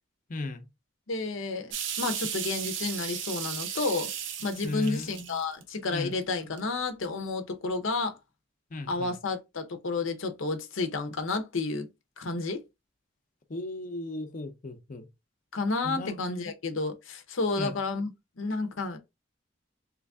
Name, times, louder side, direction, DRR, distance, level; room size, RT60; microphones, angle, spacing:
voice 1, 0.3-0.7 4.6-5.4 5.9-6.2 8.7-9.1 13.5-15.1 15.8-16.5 17.6-17.8, left 2 dB, 40° left, 0.6 m, -36 dB
voice 2, 1.1-4.1 4.4-8.2 8.9-11.9 12.2-12.6 15.5-18.1 18.4-19.0, left 3 dB, 85° left, 0.7 m, -31 dB
sound 1, 1.7-5.8 6.3-6.6, right 8 dB, 70° right, 0.6 m, -35 dB
3.2 x 2.5 x 3.5 m
head